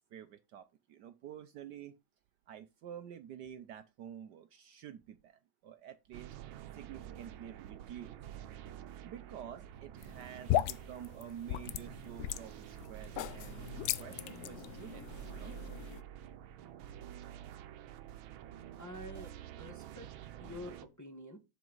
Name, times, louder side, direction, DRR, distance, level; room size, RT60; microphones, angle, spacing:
voice 1, 0.1-1.9 2.5-6.3 6.7-8.2 9.0-15.6, right 9 dB, 65° right, 1.2 m, -49 dB
sound 1, 6.1-20.9, right 11 dB, 90° right, 1.6 m, -49 dB
sound 2, 10.0-16.0, left 13 dB, 75° left, 0.9 m, -37 dB
voice 2, 18.8-20.1 20.4-21.4, left 1 dB, 10° left, 1.2 m, -48 dB
7.6 x 6.9 x 4.0 m
omnidirectional pair, 2.1 m